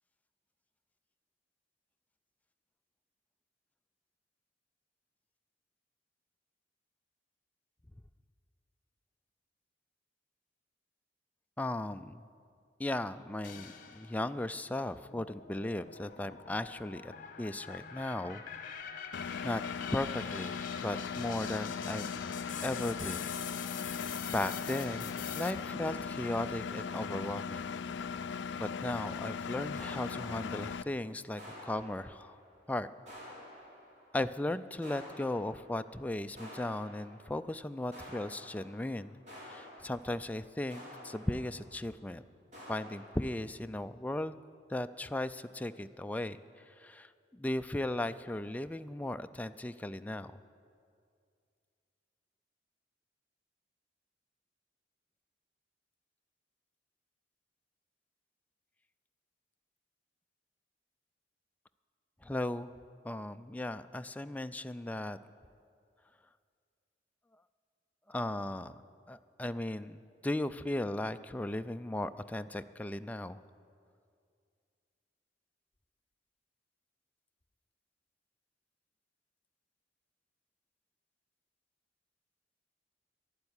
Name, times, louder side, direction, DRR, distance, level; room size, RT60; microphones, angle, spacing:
voice 1, 11.6-12.2 12.8-17.1 17.4-18.4 19.0-19.2 19.4-19.6 19.9-22.1 22.6-23.2 24.3-27.7 28.6-32.4 32.7-32.9 34.1-39.2 39.4-42.2 42.7-44.4 44.7-46.4 46.8-50.4 62.2-62.7 63.0-65.2 68.1-68.8 69.1-73.4, left 1 dB, 10° left, 10 dB, 0.3 m, -36 dB
sound 1, 13.4-14.3 14.8-25.5, left 8 dB, 50° left, 1.1 m, -45 dB
Engine, 19.1-30.8, left 6 dB, 75° left, 0.4 m, -39 dB
sound 2, 29.8-31.0 31.4-32.6 33.1-34.2 34.8-36.0 36.4-37.5 37.9-41.9 42.5-43.2, left 1 dB, 40° right, 4.5 m, -51 dB
11.5 x 11.5 x 9.7 m, 2.3 s
head